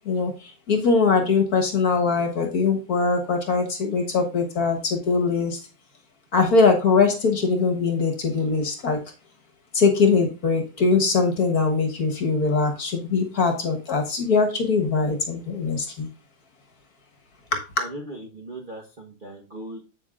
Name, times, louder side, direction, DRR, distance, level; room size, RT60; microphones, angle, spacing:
voice 1, 0.7-5.6 6.3-9.0 9.7-16.1 17.5-17.6, left 4 dB, 50° left, 4 dB, 1.6 m, -21 dB
voice 2, 17.8-19.8, right 1 dB, 35° right, -2 dB, 0.9 m, -38 dB
8.1 x 7.9 x 2.4 m, 0.32 s
omnidirectional pair, 2.3 m